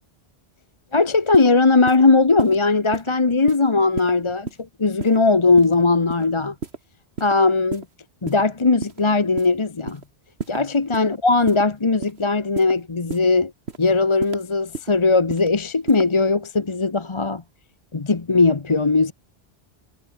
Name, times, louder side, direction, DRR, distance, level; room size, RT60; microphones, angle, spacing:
voice 1, 0.9-4.5 4.8-6.5 7.2-7.8 8.2-10.0 10.5-13.5 13.8-17.4 17.9-19.1, left 3 dB, 30° left, 1.0 m, -19 dB
sound 1, 1.3-1.5 1.9-2.0 2.4-2.6 2.9-3.1 3.5-3.6 4.0-4.1 4.5-4.6 5.0-5.2 5.6-5.7 6.1-6.2 6.6-6.8 7.2-7.3 7.7-7.9 8.3-8.4 8.8-9.0 9.4-9.5 9.9-10.1 10.4-10.6 10.9-11.1 11.5-11.6 12.0-12.2 12.6-12.7 13.1-13.3 13.7-13.8 14.2-14.4 14.7-14.9 15.3-15.5 15.9-16.1, right 4 dB, 80° right, 2.2 m, -31 dB
omnidirectional pair, 1.1 m